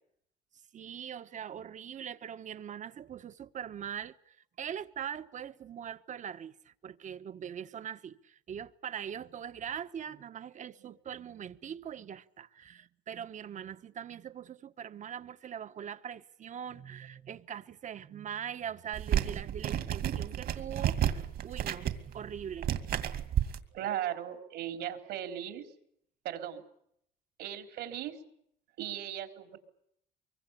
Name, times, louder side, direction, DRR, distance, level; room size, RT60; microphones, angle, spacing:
voice 1, 0.7-22.7 23.1-23.5, right 8 dB, 45° right, 1.3 m, -42 dB
sound 1, 18.9-23.6, right 10 dB, 65° right, 2.5 m, -32 dB
voice 2, 23.7-25.7 26.2-26.6 27.4-28.2 28.8-29.6, right 11 dB, 85° right, 4.1 m, -37 dB
24.5 x 23.5 x 8.4 m
cardioid pair, 110°, 17 cm